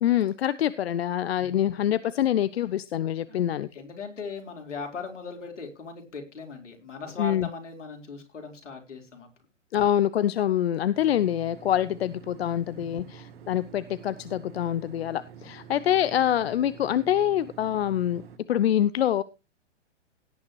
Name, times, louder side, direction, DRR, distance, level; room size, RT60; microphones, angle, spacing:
voice 1, 0.0-3.7 7.2-7.5 9.7-18.2 18.5-19.2, left 11 dB, 55° left, 16 dB, 0.7 m, -25 dB
voice 2, 1.4-1.7 3.3-9.3 12.7-13.2, left 4 dB, 75° left, 3 dB, 4.3 m, -39 dB
sound 1, 10.9-18.4, right 8 dB, 55° right, 2.7 m, -48 dB
17.0 x 9.5 x 3.1 m, 0.28 s
figure-of-eight pair, 120°, 36 cm